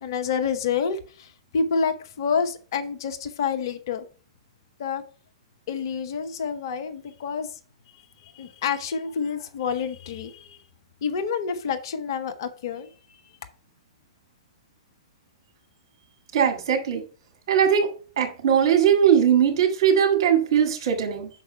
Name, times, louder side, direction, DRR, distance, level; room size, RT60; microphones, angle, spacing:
voice 1, 0.0-1.3 1.5-4.0 4.8-5.0 5.7-7.5 8.4-10.6 11.0-12.9, left 6 dB, 50° left, 8 dB, 0.9 m, -28 dB
voice 2, 16.3-17.0 17.5-17.9 18.2-21.3, right 8 dB, 50° right, 5 dB, 1.9 m, -20 dB
5.8 x 4.8 x 5.6 m, 0.39 s
figure-of-eight pair, 110°, 3 cm